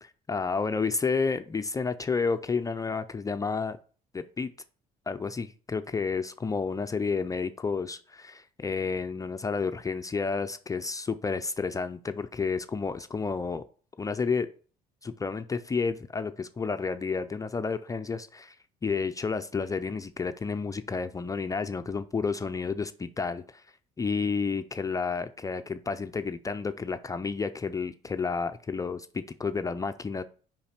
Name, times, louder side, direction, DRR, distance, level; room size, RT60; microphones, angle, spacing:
voice 1, 0.0-3.8 4.1-4.5 5.1-13.6 14.0-14.5 15.0-18.6 18.8-23.6 24.0-30.2, left 4 dB, 20° left, 9 dB, 0.4 m, -31 dB
5.5 x 5.2 x 4.3 m, 0.41 s
cardioid pair, 110°, 17 cm